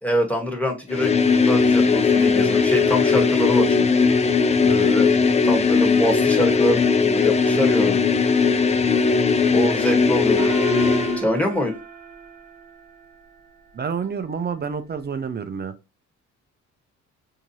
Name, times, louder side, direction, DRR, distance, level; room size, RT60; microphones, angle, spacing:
voice 1, 0.0-1.1 1.4-4.0 4.8-5.1 5.4-8.0 9.5-10.5 11.2-11.7, equal, 5° left, 1.3 m, -25 dB
sound 1, 0.9-11.2, left 5 dB, 20° left, 0.4 m, -18 dB
Gong, 10.4-13.3, right 5 dB, 90° right, 0.9 m, -33 dB
voice 2, 13.7-15.7, right 6 dB, 35° right, 0.6 m, -29 dB
4.5 x 2.8 x 2.8 m
cardioid pair, 90°, 30 cm